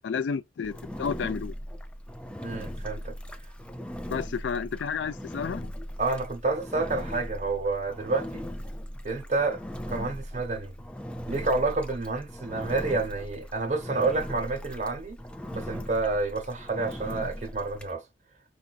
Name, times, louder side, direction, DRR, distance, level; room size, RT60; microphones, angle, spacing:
voice 1, 0.0-1.5 4.1-5.7, left 6 dB, 75° left, 0.4 m, -31 dB
Engine, 0.6-17.9, equal, 5° left, 0.4 m, -39 dB
voice 2, 2.4-3.1 6.0-8.5 9.0-10.8 11.3-15.2 15.5-18.0, right 3 dB, 40° right, 1.1 m, -29 dB
4.7 x 2.6 x 2.4 m
head